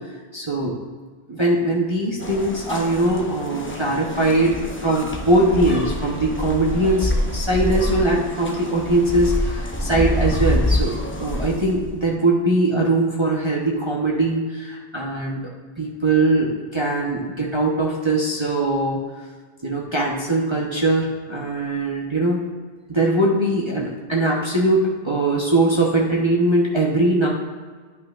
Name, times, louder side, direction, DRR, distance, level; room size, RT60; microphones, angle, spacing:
voice 1, 0.3-0.8 1.3-10.9 11.2-15.5 15.8-19.0 19.6-22.4 22.9-27.3, right 2 dB, 25° right, -4 dB, 0.9 m, -21 dB
sound 1, 2.2-12.1, left 1 dB, 15° left, 0.4 m, -26 dB
10.5 x 5.6 x 2.5 m, 1.5 s
omnidirectional pair, 1.2 m